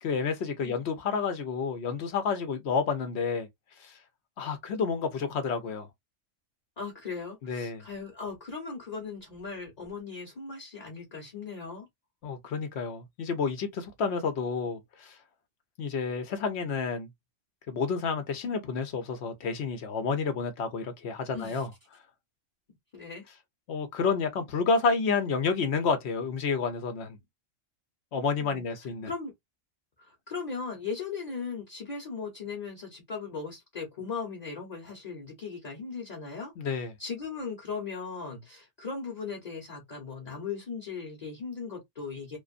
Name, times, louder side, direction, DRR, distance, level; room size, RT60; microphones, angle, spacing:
voice 1, 0.0-3.5 3.8-4.0 4.4-5.9 7.4-7.8 12.2-15.2 15.8-17.1 17.7-21.7 23.7-27.2 28.1-29.1 36.6-36.9, left 5 dB, 60° left, 1.0 m, -30 dB
voice 2, 6.8-11.9 21.3-21.7 22.9-23.2 28.4-28.6 29.0-29.3 30.0-42.4, left 5 dB, 35° left, 1.0 m, -38 dB
2.5 x 2.5 x 2.4 m
omnidirectional pair, 1.3 m